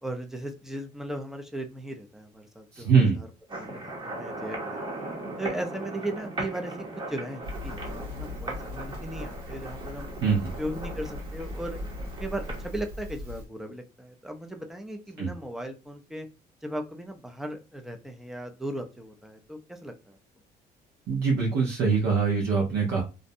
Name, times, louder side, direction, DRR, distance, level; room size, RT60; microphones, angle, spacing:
voice 1, 0.0-3.3 3.6-4.8 5.4-10.1 10.6-11.8 12.2-16.3 16.6-20.2, right 1 dB, ahead, 4 dB, 0.4 m, -37 dB
voice 2, 2.7-3.2 10.2-10.5 15.2-15.3 21.1-23.0, right 5 dB, 80° right, -1 dB, 0.8 m, -23 dB
sound 1, 3.5-12.7, right 2 dB, 30° right, 0.8 m, -38 dB
Crackle, 7.4-13.5, left 1 dB, 65° right, 1.3 m, -39 dB
2.5 x 2.1 x 2.6 m, 0.29 s
cardioid pair, 110°, 17 cm